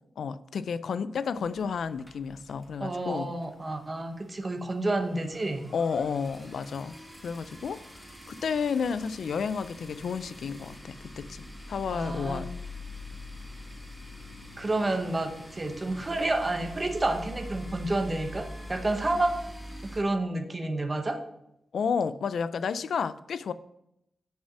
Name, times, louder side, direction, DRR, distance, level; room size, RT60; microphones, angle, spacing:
voice 1, 0.2-3.3 5.7-7.0 7.2-7.8 8.3-12.5 21.7-23.5, left 6 dB, 75° left, 14 dB, 0.4 m, -31 dB
sound 1, 1.3-3.1 3.4-3.6 3.9-4.0 4.2-20.0, left 1 dB, ahead, 1.1 m, -44 dB
voice 2, 2.8-5.7 11.9-12.5 14.6-19.5 19.9-21.2, right 2 dB, 25° right, 5 dB, 0.8 m, -29 dB
6.7 x 5.4 x 6.0 m, 0.81 s
wide cardioid pair, 150°, 0 cm